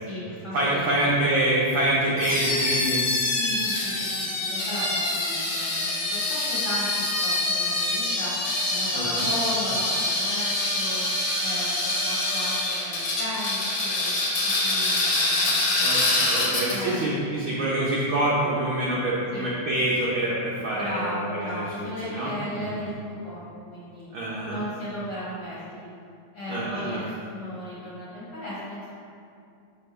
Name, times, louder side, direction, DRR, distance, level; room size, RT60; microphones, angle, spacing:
voice 1, 0.0-1.1 3.3-6.2 6.5-8.3 8.7-11.0 11.4-17.0 19.3-19.5 20.7-24.1 24.4-25.9 26.3-28.9, left 1 dB, 45° left, -9 dB, 1.4 m, -36 dB
voice 2, 0.5-3.0 8.9-9.3 15.8-22.8 24.1-24.6 26.5-27.0, right 1 dB, 85° right, -6 dB, 1.1 m, -26 dB
sound 1, 2.2-17.0, left 2 dB, 80° left, 0.9 m, -25 dB
5.2 x 4.3 x 5.6 m, 2.5 s
omnidirectional pair, 3.5 m